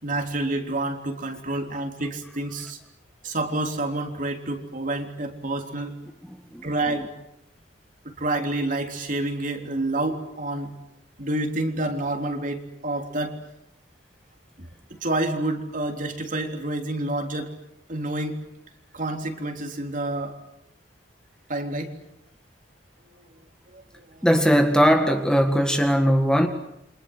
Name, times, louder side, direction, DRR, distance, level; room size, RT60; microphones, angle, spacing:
voice 1, 0.0-2.8 3.2-6.0 6.6-7.1 8.0-10.7 11.2-13.4 14.6-17.5 17.9-18.4 18.9-20.4 21.5-21.9 23.7-23.8 24.1-24.3, right 2 dB, 45° right, 4 dB, 3.6 m, -28 dB
voice 2, 6.3-6.7 24.2-26.5, equal, 5° left, 5 dB, 1.8 m, -19 dB
29.0 x 25.5 x 8.0 m, 0.81 s
head